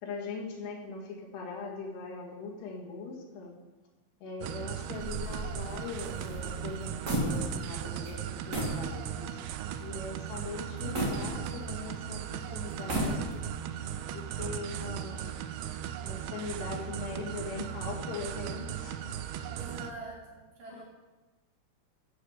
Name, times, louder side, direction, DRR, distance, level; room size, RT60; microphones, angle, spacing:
voice 1, 0.0-3.5 4.2-9.5 9.8-13.5 14.1-15.4 16.0-19.0 19.4-19.5 20.7-20.8, left 4 dB, 85° left, -1 dB, 4.2 m, -41 dB
sound 1, 4.4-19.9, right 10 dB, 80° right, 2.2 m, -38 dB
sound 2, 4.9-7.8 8.0-8.2 8.5-8.8 9.3-9.4 10.9-11.9 12.7-13.6, right 1 dB, 25° right, 1.8 m, -34 dB
voice 2, 4.9-5.4 10.8-11.3 19.5-20.8, right 4 dB, 55° right, -3 dB, 4.5 m, -45 dB
13.5 x 6.5 x 7.2 m, 1.2 s
omnidirectional pair, 4.7 m